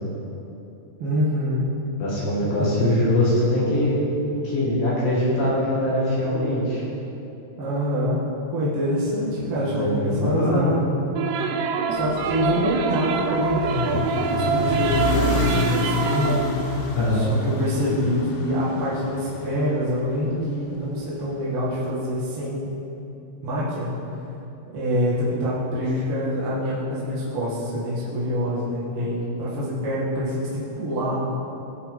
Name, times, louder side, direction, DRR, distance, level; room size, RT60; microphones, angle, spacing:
voice 1, 1.0-1.7 2.4-3.1 7.6-8.2 8.5-10.8 11.9-16.4 16.6-22.7 23.4-23.9 24.7-31.3, equal, 45° right, -9 dB, 1.9 m, -26 dB
voice 2, 2.0-4.0 4.3-6.8 9.6-10.7 16.9-17.3, left 1 dB, 60° left, -7 dB, 3.5 m, -22 dB
sound 1, 11.2-16.6, right 5 dB, 80° right, 2.6 m, -25 dB
sound 2, 11.9-20.3, left 4 dB, 80° left, 2.5 m, -29 dB
17.5 x 6.0 x 3.8 m, 2.9 s
omnidirectional pair, 4.8 m